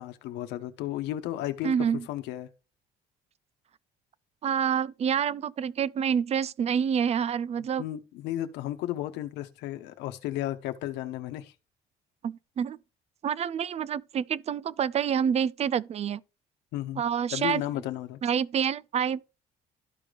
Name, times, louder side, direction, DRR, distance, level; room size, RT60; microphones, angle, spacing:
voice 1, 0.0-1.7 2.1-2.5 7.8-11.5 16.7-17.0 17.3-18.2, left 13 dB, 90° left, 1.0 m, -33 dB
voice 2, 1.6-2.1 4.4-7.8 12.2-12.8 13.2-16.2 17.0-17.6 18.2-19.2, right 8 dB, 40° right, 0.4 m, -27 dB
13.0 x 5.0 x 2.4 m
cardioid pair, 110°, 17 cm